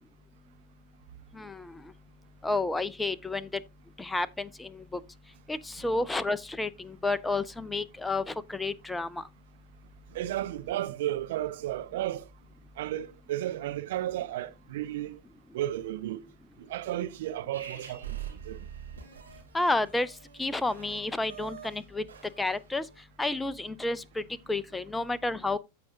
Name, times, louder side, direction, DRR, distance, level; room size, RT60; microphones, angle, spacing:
voice 1, 1.3-1.8 2.4-3.5 4.0-5.0 5.5-9.2 19.5-22.0 22.4-22.9 23.2-25.6, left 2 dB, 10° left, 0.6 m, -31 dB
voice 2, 10.1-12.3 12.8-15.2 15.5-16.2 16.6-18.6, right 13 dB, 55° right, 0.6 m, -33 dB
sound 1, 17.5-23.0, right 9 dB, 70° right, 3.1 m, -45 dB
14.5 x 4.9 x 2.6 m
figure-of-eight pair, 90°, 0 cm